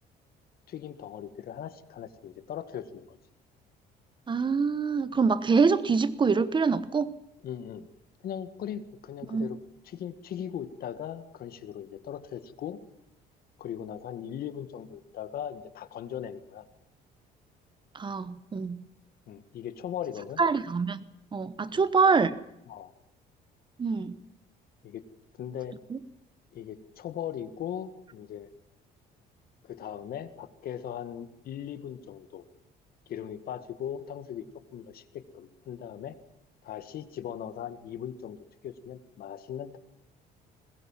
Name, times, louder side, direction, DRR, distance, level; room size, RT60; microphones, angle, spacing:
voice 1, 0.7-3.2 7.4-7.9 8.2-9.6 9.9-12.8 13.6-16.7 19.3-20.4 21.7-21.9 22.7-22.9 24.8-25.0 25.4-25.8 26.5-28.5 29.6-32.4 33.1-34.4 34.7-36.2 36.6-39.8, left 9 dB, 65° left, 1.9 m, -39 dB
voice 2, 4.3-7.1 9.3-9.5 17.9-18.8 20.4-21.0 21.3-22.3 23.8-24.2 25.9-26.0, right 5 dB, 30° right, 1.1 m, -25 dB
21.5 x 20.5 x 7.4 m
cardioid pair, 110°, 17 cm